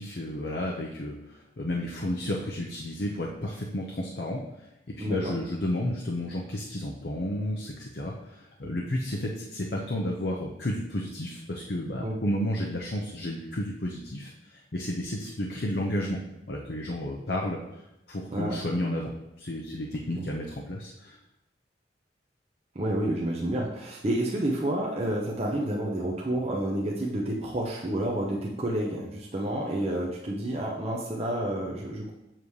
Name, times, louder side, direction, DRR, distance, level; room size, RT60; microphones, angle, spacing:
voice 1, 0.0-4.4 4.9-16.2 16.5-19.1 19.4-21.2, left 1 dB, 65° left, -1 dB, 0.8 m, -32 dB
voice 2, 5.0-5.3 12.0-12.2 18.3-18.6 20.2-20.3 22.7-32.1, right 1 dB, 35° right, -3 dB, 0.8 m, -29 dB
7.5 x 6.9 x 3.2 m, 0.88 s
head